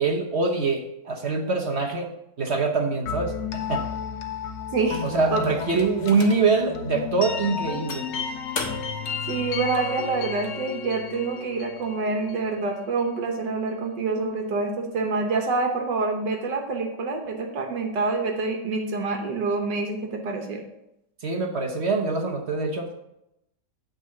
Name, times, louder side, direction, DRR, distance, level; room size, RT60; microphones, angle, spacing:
voice 1, 0.0-2.1 2.4-3.3 3.7-3.8 5.0-8.2 21.2-22.9, right 4 dB, 45° right, 1 dB, 1.0 m, -24 dB
sound 1, 3.1-12.8, left 7 dB, 80° left, 1.5 m, -33 dB
voice 2, 4.7-5.0 5.3-5.4 9.3-20.6, right 3 dB, 75° right, 3 dB, 1.6 m, -27 dB
sound 2, 4.9-6.6 7.2-7.3 7.9-9.1, left 4 dB, 50° left, 1.4 m, -37 dB
8.9 x 3.9 x 7.1 m, 0.85 s
omnidirectional pair, 1.9 m